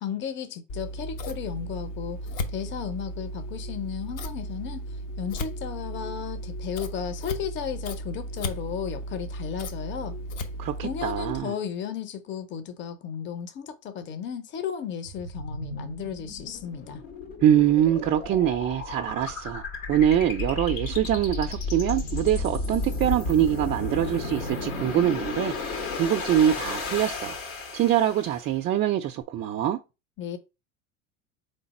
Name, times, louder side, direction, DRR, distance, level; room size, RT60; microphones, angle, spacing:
voice 1, 0.0-2.2 2.5-4.9 5.2-10.2 10.8-17.0 30.2-30.4, left 8 dB, 30° left, 0.7 m, -34 dB
Scissors, 0.7-11.4, equal, 60° left, 0.9 m, -35 dB
voice 2, 10.6-11.5 17.4-27.4 27.7-29.8, right 11 dB, 30° right, 0.4 m, -24 dB
sound 1, 15.1-28.5, left 3 dB, 80° left, 1.6 m, -33 dB
3.9 x 3.3 x 4.1 m
hypercardioid pair, 80°, 40 cm